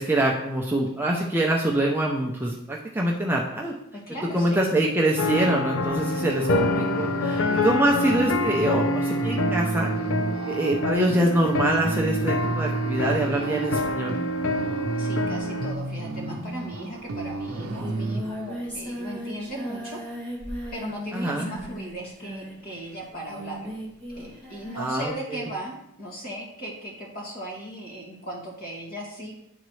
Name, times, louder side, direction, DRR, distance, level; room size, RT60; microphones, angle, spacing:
voice 1, 0.0-3.7 4.3-9.9 10.5-14.2 21.1-21.5 24.8-25.5, right 1 dB, 10° right, -1 dB, 0.5 m, -25 dB
voice 2, 3.9-4.6 15.0-20.0 20.7-23.8 24.1-29.4, right 1 dB, 45° left, -3 dB, 2.0 m, -37 dB
sound 1, 5.2-15.7, left 1 dB, 60° left, 0.5 m, -27 dB
sound 2, 6.4-18.8, right 2 dB, 75° right, 0.7 m, -32 dB
Singing, 17.1-17.2 17.4-25.1, equal, 10° left, 1.4 m, -37 dB
10.5 x 3.9 x 3.1 m, 0.80 s
head